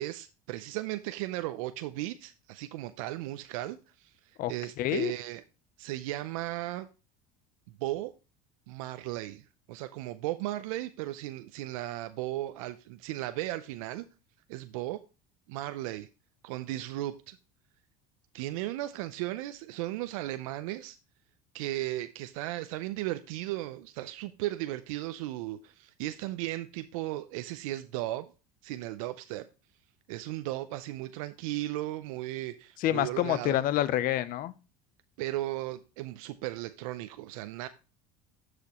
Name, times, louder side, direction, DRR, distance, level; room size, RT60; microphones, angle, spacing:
voice 1, 0.0-5.4 5.8-6.9 7.8-8.1 8.7-14.1 14.5-15.0 15.5-16.1 16.4-17.4 18.3-21.0 21.5-28.3 28.6-29.5 30.1-33.6 35.2-37.7, right 16 dB, 80° right, 0.5 m, -36 dB
voice 2, 4.8-5.1 32.8-34.5, left 13 dB, 55° left, 0.6 m, -27 dB
10.5 x 5.0 x 2.9 m
supercardioid pair, 95°, 17 cm